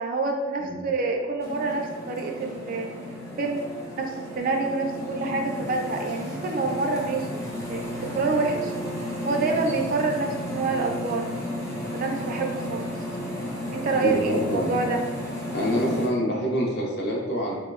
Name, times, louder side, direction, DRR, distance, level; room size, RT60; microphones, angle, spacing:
voice 1, 0.0-2.9 3.4-3.6 3.9-8.7 9.2-11.3 11.9-13.0 13.7-15.0, right 3 dB, 45° right, 2 dB, 0.3 m, -27 dB
sound 1, 1.4-16.1, left 1 dB, 15° left, 0.5 m, -33 dB
voice 2, 14.0-14.7 15.5-17.5, equal, 60° left, -2 dB, 0.6 m, -26 dB
3.9 x 2.1 x 2.3 m, 1.3 s
head